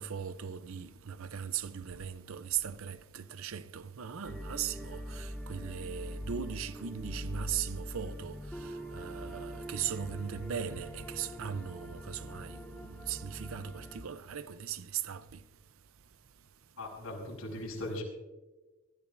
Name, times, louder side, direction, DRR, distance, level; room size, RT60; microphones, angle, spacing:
voice 1, 0.0-15.3, right 8 dB, 70° right, 0.6 m, -38 dB
sound 1, 4.2-14.0, equal, 5° left, 2.8 m, -43 dB
voice 2, 16.8-18.0, left 1 dB, 90° left, 5.5 m, -39 dB
24.0 x 13.5 x 2.6 m
head